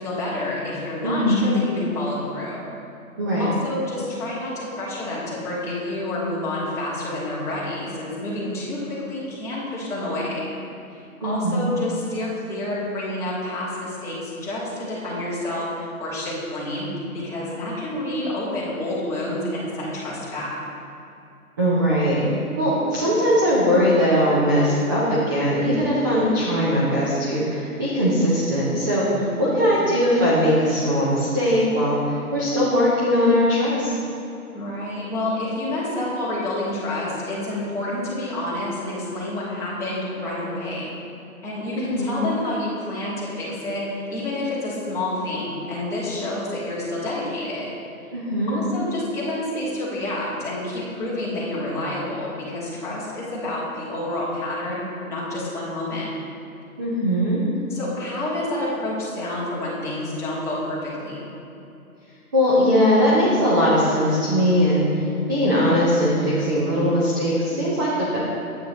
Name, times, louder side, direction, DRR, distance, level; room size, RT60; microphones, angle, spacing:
voice 1, 0.0-2.7 3.4-10.5 10.9-20.6 29.1-29.7 34.5-40.9 41.4-47.7 48.5-56.1 57.7-61.3, left 1 dB, 5° left, -10 dB, 1.7 m, -29 dB
voice 2, 1.0-1.5 3.2-3.5 11.2-11.7 21.6-22.2 22.6-33.9 41.8-42.2 48.1-48.6 56.8-57.4 62.3-68.2, equal, 15° right, -7 dB, 0.5 m, -20 dB
9.3 x 8.5 x 3.1 m, 2.8 s
hypercardioid pair, 140°, 45 cm